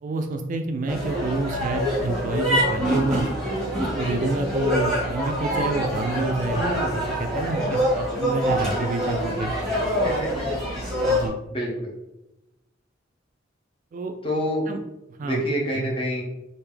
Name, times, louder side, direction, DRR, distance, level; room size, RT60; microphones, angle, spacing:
voice 1, 0.0-3.3 4.0-9.5 11.0-11.4 13.9-14.2 14.7-14.8 15.2-15.4, right 3 dB, 40° right, 6 dB, 0.3 m, -28 dB
sound 1, 0.9-11.3, equal, 5° left, 1.0 m, -25 dB
voice 2, 6.5-7.2 10.0-10.3 11.5-11.9 14.2-14.7 15.2-16.2, equal, 30° left, -3 dB, 1.0 m, -27 dB
3.3 x 2.6 x 3.3 m, 0.94 s
head